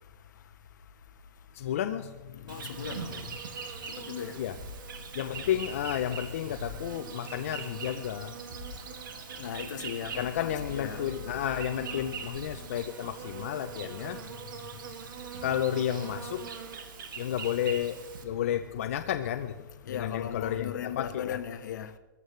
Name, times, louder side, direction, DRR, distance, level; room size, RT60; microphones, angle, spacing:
voice 1, 1.5-2.9 4.3-4.6 5.1-8.3 10.1-14.3 14.7-14.8 15.4-16.5 17.2-21.4, left 10 dB, 40° left, 0.5 m, -32 dB
voice 2, 2.5-3.2 4.1-4.3 9.4-11.0 11.9-12.0 19.9-21.9, left 9 dB, 65° left, 1.1 m, -37 dB
Insect, 2.5-18.2, right 6 dB, 80° right, 2.1 m, -42 dB
sound 1, 4.5-5.6 6.5-7.4 8.5-9.2 10.5-11.0, left 1 dB, 35° right, 5.4 m, -46 dB
20.5 x 15.0 x 3.2 m
hypercardioid pair, 180°, 11 cm